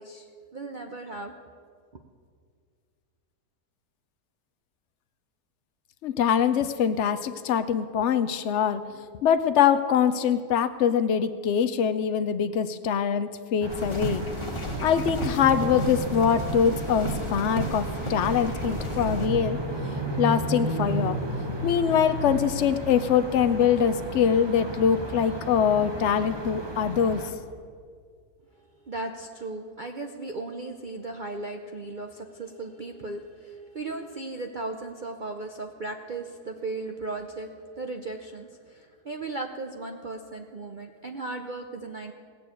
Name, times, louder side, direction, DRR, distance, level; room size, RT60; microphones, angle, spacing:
voice 1, 0.0-1.3 28.8-37.5 37.8-42.1, right 2 dB, 65° right, 4 dB, 0.4 m, -36 dB
voice 2, 6.0-8.8 9.2-14.2 14.8-19.6 20.2-21.2 21.6-27.2, left 8 dB, 85° left, 10 dB, 0.6 m, -23 dB
sound 1, 13.6-27.3, right 1 dB, 20° right, 0.8 m, -33 dB
sound 2, 13.7-19.3, equal, 15° left, 1.6 m, -33 dB
18.0 x 6.9 x 8.3 m, 2.1 s
omnidirectional pair, 1.8 m